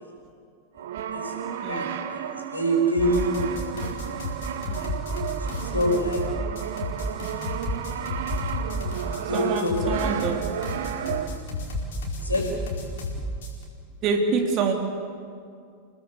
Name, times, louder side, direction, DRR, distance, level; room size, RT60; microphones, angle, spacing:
voice 1, 0.7-1.3 1.7-3.3 4.1-4.2 4.7-5.2 5.6-6.4 9.2-10.0 12.2-12.4, right 1 dB, 80° left, 1 dB, 5.4 m, -27 dB
Brass instrument, 0.8-11.6, right 9 dB, 55° right, 1.3 m, -33 dB
sound 1, 3.0-13.6, left 1 dB, 60° left, 4.6 m, -32 dB
voice 2, 9.3-10.4 14.0-14.7, right 5 dB, 35° right, 3 dB, 3.1 m, -26 dB
29.0 x 18.5 x 6.8 m, 2.3 s
figure-of-eight pair, 90°, 0 cm